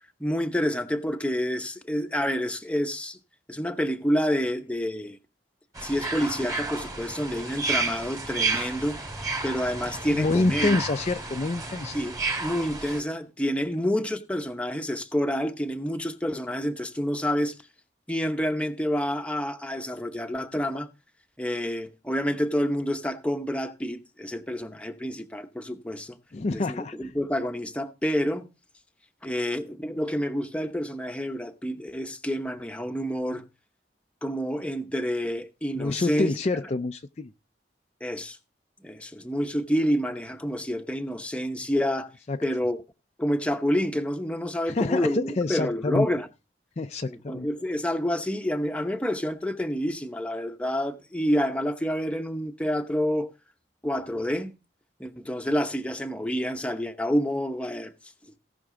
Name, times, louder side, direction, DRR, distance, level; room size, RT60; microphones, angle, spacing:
voice 1, 0.2-3.2 3.5-5.2 5.8-9.0 9.4-10.8 11.9-17.6 18.1-20.9 21.4-26.2 26.5-28.5 29.2-33.4 34.2-36.3 38.0-38.4 38.8-42.1 42.4-42.8 43.2-46.3 47.0-53.3 53.8-54.5 55.0-57.9, equal, 5° left, 0.8 m, -28 dB
sound 1, 5.8-13.0, right 3 dB, 20° right, 2.3 m, -31 dB
voice 2, 10.1-12.0 26.3-27.0 35.8-37.3 42.3-42.4 44.7-46.1 46.8-47.5, left 3 dB, 35° left, 0.4 m, -27 dB
17.5 x 5.9 x 3.8 m
head